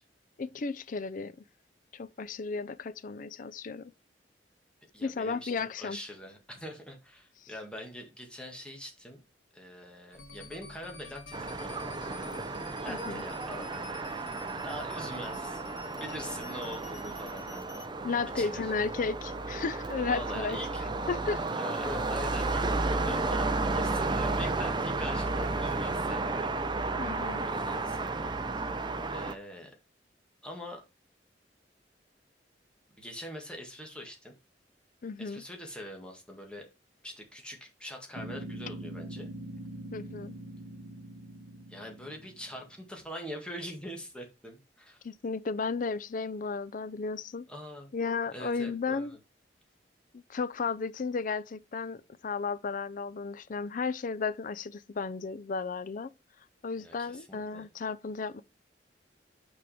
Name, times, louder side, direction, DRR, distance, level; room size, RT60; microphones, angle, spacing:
voice 1, 0.4-1.4 1.9-3.9 5.0-6.0 7.4-7.5 12.9-13.2 18.0-20.6 21.1-21.5 27.0-27.5 35.0-35.4 39.9-40.3 45.0-47.4 47.9-49.1 50.1-56.1 56.6-58.4, left 4 dB, 50° left, 0.5 m, -34 dB
voice 2, 4.9-9.2 9.5-12.3 12.8-14.0 14.5-15.6 15.9-17.8 18.4-18.7 20.0-20.8 21.5-26.7 27.4-28.6 29.1-29.7 30.4-30.8 33.0-34.3 35.2-36.7 37.0-39.3 41.7-45.0 47.5-47.9 48.3-49.1 56.8-57.7, left 1 dB, 5° left, 1.7 m, -43 dB
sound 1, 10.1-17.9, left 3 dB, 85° left, 1.9 m, -49 dB
sound 2, 11.3-29.3, right 3 dB, 25° right, 0.6 m, -33 dB
sound 3, 38.1-42.8, right 1 dB, 55° right, 1.2 m, -43 dB
6.0 x 4.8 x 5.0 m
head